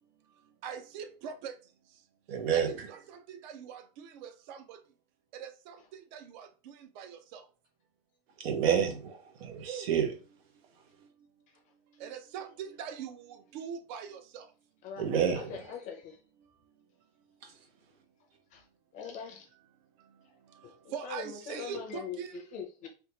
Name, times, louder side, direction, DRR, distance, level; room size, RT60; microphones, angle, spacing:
voice 1, 0.6-1.5 2.5-4.8 5.3-5.8 6.1-6.5 7.0-7.4 12.0-13.2 13.5-14.4 20.9-22.3, right 7 dB, 50° right, 0.5 m, -42 dB
voice 2, 2.3-2.9 8.4-10.2 15.0-15.5 17.4-17.5, right 8 dB, 90° right, 1.0 m, -29 dB
voice 3, 15.3-16.2 18.5-18.7 18.9-19.5 20.6-22.9, left 7 dB, 25° left, 0.5 m, -42 dB
3.5 x 2.3 x 2.9 m
supercardioid pair, 170°, 29 cm